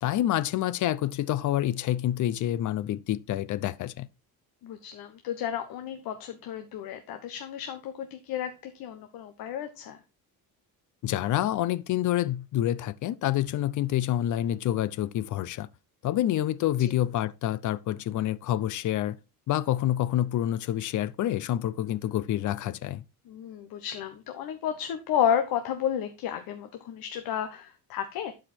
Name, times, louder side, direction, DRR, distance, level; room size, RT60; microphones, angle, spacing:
voice 1, 0.0-4.1 11.0-15.7 16.0-19.2 19.5-23.0, left 12 dB, 55° left, 0.6 m, -27 dB
voice 2, 4.6-10.0 16.8-16.9 23.3-28.3, left 9 dB, 75° left, 1.2 m, -32 dB
11.5 x 5.1 x 4.3 m
cardioid pair, 145°, 37 cm